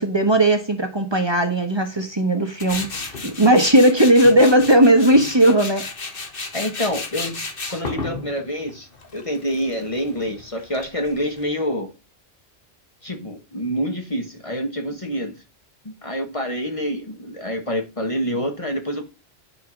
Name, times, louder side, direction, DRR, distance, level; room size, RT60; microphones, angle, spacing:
voice 1, 0.0-5.9, right 1 dB, 25° right, 1.2 m, -17 dB
Tools, 2.6-11.4, left 3 dB, 60° left, 1.5 m, -33 dB
voice 2, 6.5-7.4 7.7-11.9 13.0-15.4 15.8-19.0, equal, 30° left, 1.2 m, -27 dB
9.9 x 4.6 x 6.0 m
omnidirectional pair, 1.1 m